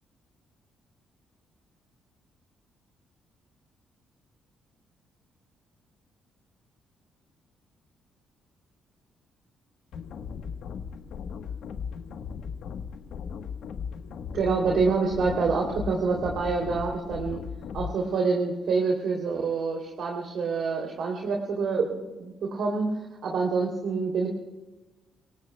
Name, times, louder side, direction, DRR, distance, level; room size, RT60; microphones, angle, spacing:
sound 1, 9.9-17.9, left 6 dB, 75° left, 1.2 m, -37 dB
voice 1, 14.3-17.4 17.7-22.9 23.2-24.3, right 4 dB, 65° right, 0 dB, 3.0 m, -27 dB
29.0 x 18.0 x 2.3 m, 1.1 s
cardioid pair, 90°, 0 cm